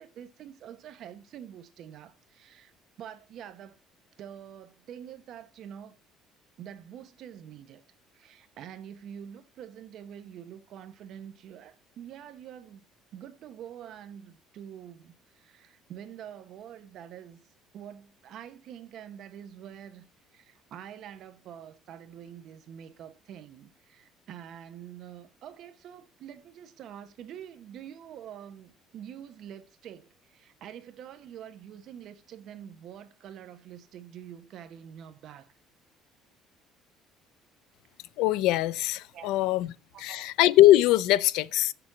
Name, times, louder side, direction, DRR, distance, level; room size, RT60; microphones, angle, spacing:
voice 1, 0.0-2.7 3.0-3.8 4.2-6.0 6.6-7.8 8.1-12.8 13.1-17.4 17.7-20.1 20.3-35.5 39.1-39.4 39.9-40.3, right 9 dB, 45° right, 0.9 m, -46 dB
voice 2, 38.2-39.7 40.0-41.7, left 15 dB, 70° left, 0.5 m, -22 dB
8.2 x 6.9 x 7.3 m
cardioid pair, 180°, 0 cm